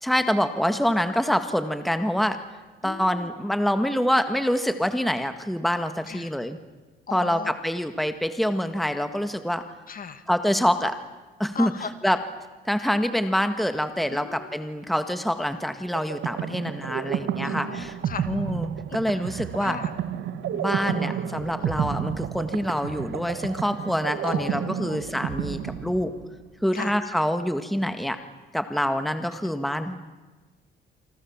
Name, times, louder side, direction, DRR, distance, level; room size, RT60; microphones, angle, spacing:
voice 1, 0.0-2.4 2.8-6.6 7.1-9.6 10.3-11.0 11.4-11.7 12.0-12.2 12.7-18.0 18.3-19.8 20.5-26.1 26.6-28.2 28.5-30.0, equal, ahead, 8 dB, 1.8 m, -26 dB
voice 2, 2.8-3.3 6.1-6.3 7.1-7.5 9.9-10.2 11.5-12.1 14.1-14.6 17.4-18.3 19.6-20.0 21.6-21.9 24.2-25.0 26.7-27.0 29.4-29.5, left 6 dB, 45° left, 10 dB, 2.0 m, -37 dB
sound 1, 15.9-26.5, right 9 dB, 75° right, 1.4 m, -31 dB
27.5 x 24.5 x 7.4 m, 1.3 s
cardioid pair, 90°, 20 cm